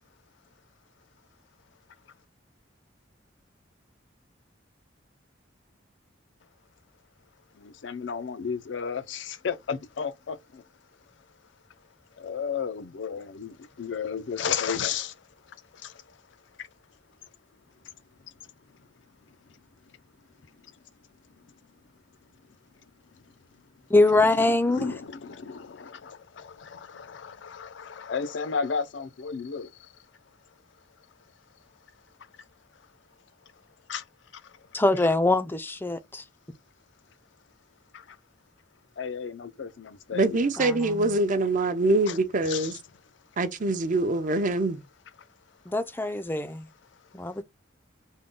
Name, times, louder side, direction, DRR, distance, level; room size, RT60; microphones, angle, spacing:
voice 1, 7.6-10.6 12.2-15.2 15.5-16.2 16.6-16.7 24.2-29.9 33.9-34.1 34.3-34.7 37.9-38.2 39.0-40.4 42.1-42.2 42.4-42.7, left 6 dB, 70° left, 0.5 m, -34 dB
voice 2, 23.9-24.9 34.7-36.2 40.6-40.7 45.7-46.7 47.1-47.4, left 2 dB, 10° left, 0.4 m, -23 dB
voice 3, 40.1-42.8 43.4-44.8, right 2 dB, 40° right, 0.5 m, -24 dB
3.6 x 2.1 x 3.7 m
head